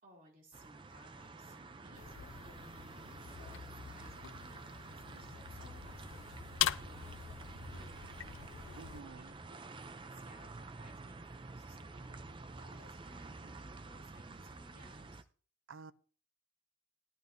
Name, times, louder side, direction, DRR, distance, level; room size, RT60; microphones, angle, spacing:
voice 1, 0.0-8.4 9.0-9.6 10.0-15.3, equal, 45° right, 3.0 m, -61 dB
sound 1, 0.5-15.2, right 3 dB, 25° right, 0.5 m, -50 dB
sound 2, 1.9-9.0, left 10 dB, 85° left, 0.4 m, -42 dB
voice 2, 8.7-9.3 15.7-15.9, right 4 dB, 85° right, 0.5 m, -50 dB
sound 3, 9.3-9.4, equal, 20° left, 2.4 m, -60 dB
14.5 x 11.0 x 2.6 m
head